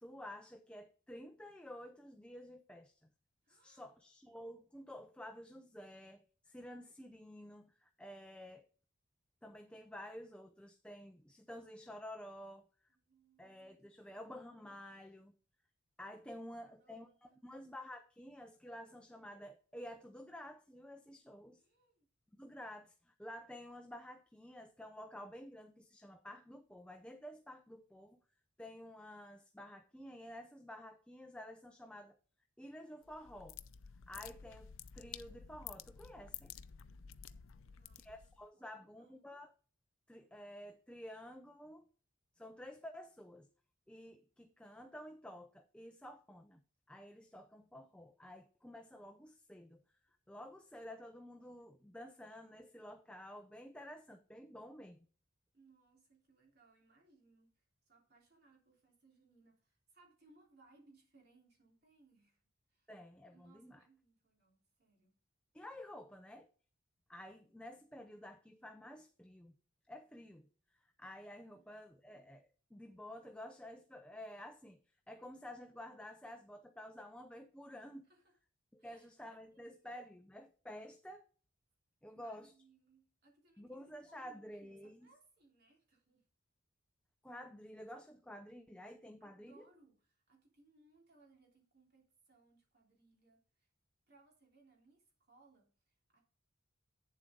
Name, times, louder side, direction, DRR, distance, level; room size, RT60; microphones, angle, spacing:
voice 1, 0.0-3.1 3.5-8.7 9.4-12.9 13.4-15.3 16.0-21.6 22.3-28.2 28.6-32.2 32.6-33.6 34.1-36.5 37.9-39.5 40.1-41.9 42.4-43.5 43.9-46.6 46.9-49.8 50.3-55.1 62.9-63.8 65.5-66.5 67.1-69.6 69.9-74.8 75.1-78.1 78.7-81.2 82.0-82.5 83.6-85.1 87.2-89.7, left 1 dB, 5° left, 0.5 m, -51 dB
voice 2, 3.4-3.9 12.9-13.5 13.9-14.3 16.4-17.6 21.6-22.1 37.5-39.3 55.5-62.4 62.7-62.9 63.3-65.2 71.5-71.8 78.0-78.3 78.8-79.1 79.5-80.0 82.0-86.3 89.2-93.7 94.1-96.2, right 3 dB, 50° right, 3.2 m, -69 dB
sound 1, 33.0-38.4, left 9 dB, 75° left, 0.5 m, -52 dB
9.0 x 7.4 x 3.6 m
head